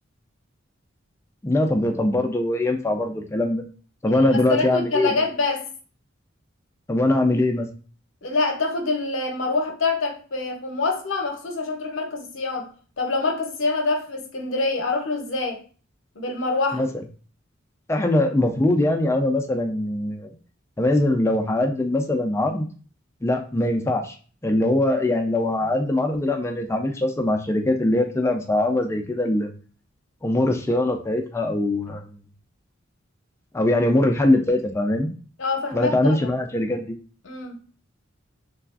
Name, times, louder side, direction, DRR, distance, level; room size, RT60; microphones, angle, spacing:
voice 1, 1.4-3.6 4.0-5.2 6.9-7.7 16.7-16.9 17.9-20.3 20.8-22.7 23.2-24.1 24.4-29.5 30.2-32.1 33.5-35.1 35.7-37.0, left 1 dB, 15° left, 0.3 m, -22 dB
voice 2, 4.1-5.7 8.2-15.6 16.1-16.8 35.4-36.3 37.2-37.6, left 3 dB, 65° left, 0.7 m, -26 dB
3.3 x 2.3 x 2.3 m
head